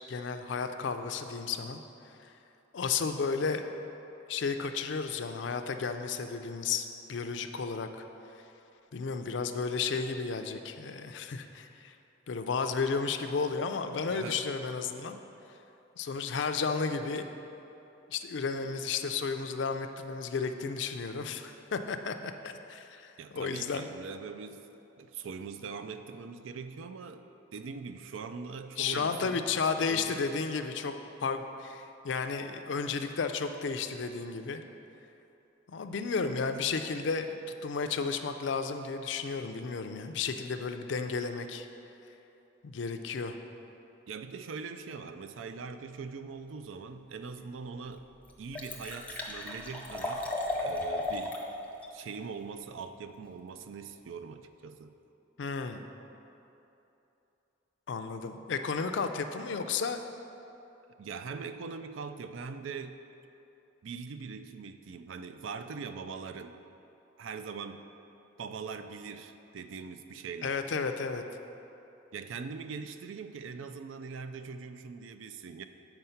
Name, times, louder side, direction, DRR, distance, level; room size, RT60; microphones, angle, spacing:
voice 1, 0.1-1.8 2.2-2.3 2.7-3.6 4.3-7.9 8.9-11.9 12.3-15.2 16.0-17.3 18.1-23.9 28.8-30.9 31.2-34.6 35.7-41.7 42.6-43.4 55.4-55.8 57.9-60.1 70.4-71.2, left 5 dB, 65° left, 8 dB, 0.4 m, -33 dB
voice 2, 14.1-14.4 23.2-24.7 25.0-27.2 27.5-30.2 44.1-48.0 48.4-50.3 50.6-51.4 51.9-54.9 61.0-63.0 63.8-66.6 67.2-67.9 68.4-70.6 72.1-75.6, right 5 dB, 80° right, 9 dB, 0.4 m, -42 dB
Liquid, 47.4-47.5 47.9-48.0 48.2-51.5 51.8-51.9, left 2 dB, 5° left, 0.6 m, -35 dB
7.9 x 4.6 x 5.7 m, 2.9 s
head